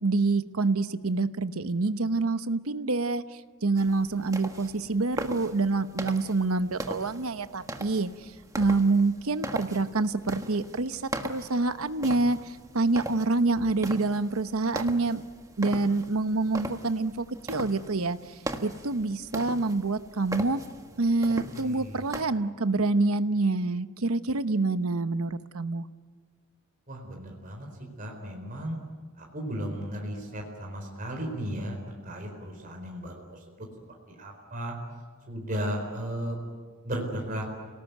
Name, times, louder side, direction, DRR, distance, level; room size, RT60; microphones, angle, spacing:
voice 1, 0.0-3.2 3.6-8.1 8.6-15.2 15.6-18.2 18.6-20.6 21.0-25.9, right 3 dB, 75° right, 11 dB, 1.0 m, -26 dB
sound 1, 3.8-22.2, right 1 dB, 15° right, 1.4 m, -40 dB
voice 2, 21.5-22.1 26.9-27.7 28.0-28.8 29.2-33.7 34.2-34.7 35.3-36.4 36.8-37.4, equal, 40° right, 1 dB, 4.4 m, -35 dB
29.5 x 18.5 x 9.3 m, 1.5 s
head